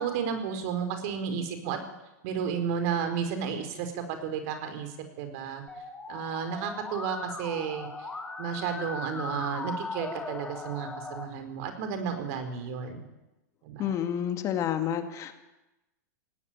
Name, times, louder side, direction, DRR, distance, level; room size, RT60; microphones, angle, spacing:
voice 1, 0.0-1.8 2.2-5.6 6.1-8.1 8.4-13.0 13.6-14.0, right 7 dB, 55° right, 8 dB, 4.6 m, -32 dB
Musical instrument, 5.7-11.2, left 3 dB, 10° left, 3.0 m, -38 dB
voice 2, 13.8-15.3, left 9 dB, 35° left, 7 dB, 2.2 m, -29 dB
19.5 x 17.0 x 9.4 m, 0.98 s
hypercardioid pair, 130°, 10 cm